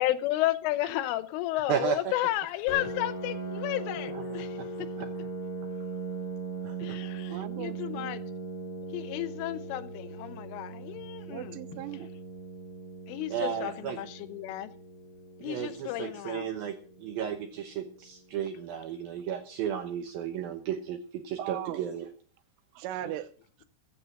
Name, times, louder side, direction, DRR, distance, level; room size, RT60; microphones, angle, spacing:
voice 1, 0.0-4.9 6.8-8.2 8.9-11.6 13.1-14.7 15.4-16.5, left 15 dB, 85° left, 3.3 m, -32 dB
Piano, 2.7-18.1, right 3 dB, 20° left, 4.6 m, -40 dB
voice 2, 6.6-7.0 13.3-14.0 15.4-16.7 17.0-22.1, right 9 dB, 75° right, 2.2 m, -34 dB
voice 3, 7.3-8.1 11.3-12.1 21.4-21.9 22.8-23.3, right 12 dB, 90° right, 3.4 m, -38 dB
15.5 x 8.6 x 6.4 m
omnidirectional pair, 5.7 m